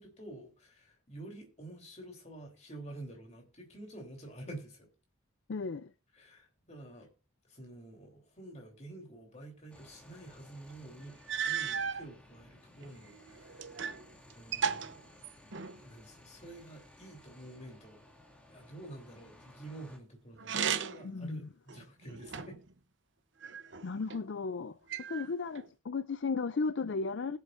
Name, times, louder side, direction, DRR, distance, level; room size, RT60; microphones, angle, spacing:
voice 1, 0.0-4.9 6.1-7.1 7.5-13.6 14.3-15.1 15.8-18.0 18.5-22.6, right 2 dB, 30° left, 3.3 m, -49 dB
voice 2, 5.5-5.9 21.0-21.4 23.8-24.8 25.1-27.4, left 4 dB, 60° left, 0.4 m, -35 dB
sound 1, 9.7-20.0, left 1 dB, 5° left, 2.1 m, -58 dB
sound 2, 10.7-10.8 11.3-12.0 12.8-14.0 14.3-15.8 20.4-21.1 21.7-22.7 23.4-24.2 24.9-25.7, right 7 dB, 55° right, 0.8 m, -36 dB
20.5 x 7.7 x 2.5 m
head